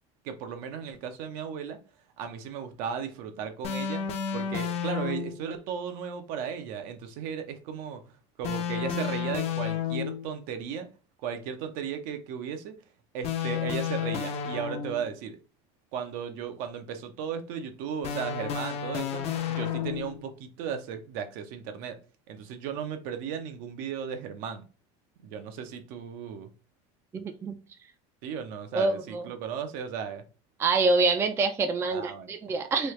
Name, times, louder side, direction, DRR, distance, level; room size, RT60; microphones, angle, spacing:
voice 1, 0.2-1.8 2.2-4.0 4.3-8.0 8.4-10.9 11.2-12.7 13.1-15.4 15.9-19.2 19.5-22.0 22.3-24.6 25.2-26.5 28.2-30.2 31.9-32.3, right 7 dB, 65° right, 0.6 m, -35 dB
sound 1, 3.6-5.5 8.4-10.3 13.2-15.2 18.0-20.2, left 8 dB, 45° left, 0.5 m, -31 dB
voice 2, 27.1-27.5 28.7-29.3 30.6-32.9, right 3 dB, 15° right, 0.3 m, -26 dB
3.2 x 2.3 x 3.0 m
supercardioid pair, 125°, 15 cm